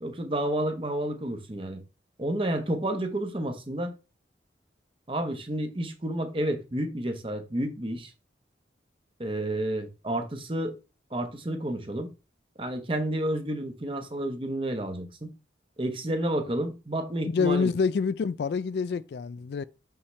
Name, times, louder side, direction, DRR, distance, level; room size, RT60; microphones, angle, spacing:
voice 1, 0.0-1.8 2.2-3.9 5.1-8.1 9.2-10.8 11.1-12.1 12.6-15.3 15.8-17.7, right 1 dB, 30° right, 1.0 m, -30 dB
voice 2, 17.3-19.6, left 5 dB, 60° left, 0.3 m, -27 dB
6.4 x 5.7 x 3.2 m
head